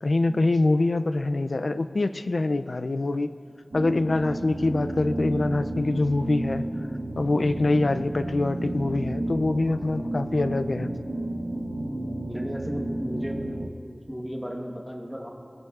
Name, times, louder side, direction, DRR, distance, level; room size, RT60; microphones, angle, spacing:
voice 1, 0.0-3.3 3.7-6.7 7.2-10.9, left 2 dB, 85° left, 11 dB, 0.3 m, -24 dB
sound 1, 3.7-13.7, right 1 dB, 85° right, 0.9 m, -32 dB
voice 2, 12.2-13.4 13.8-15.3, equal, ahead, 0 dB, 1.2 m, -35 dB
20.0 x 9.4 x 2.4 m, 2.4 s
wide cardioid pair, 40°, 0 cm